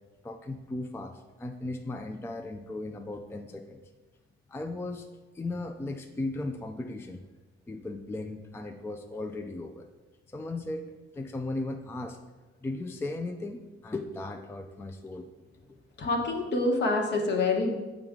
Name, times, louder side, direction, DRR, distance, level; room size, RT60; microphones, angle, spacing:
voice 1, 0.2-3.8 4.5-7.2 7.7-9.9 10.3-12.2 12.6-15.3, left 2 dB, 10° left, 6 dB, 0.3 m, -37 dB
voice 2, 16.0-17.7, left 2 dB, 55° left, 2 dB, 1.1 m, -26 dB
7.5 x 4.8 x 3.7 m, 1.2 s
cardioid pair, 125°, 21 cm